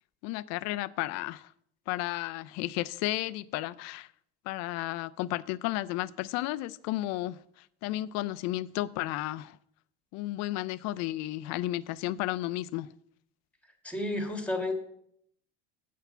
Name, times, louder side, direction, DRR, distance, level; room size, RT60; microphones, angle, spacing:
voice 1, 0.2-1.5 1.9-4.1 4.5-7.4 7.8-9.6 10.1-12.9, left 16 dB, 55° left, 0.5 m, -33 dB
voice 2, 13.8-14.7, left 1 dB, 5° left, 1.5 m, -31 dB
8.4 x 5.9 x 5.6 m
supercardioid pair, 110°, 32 cm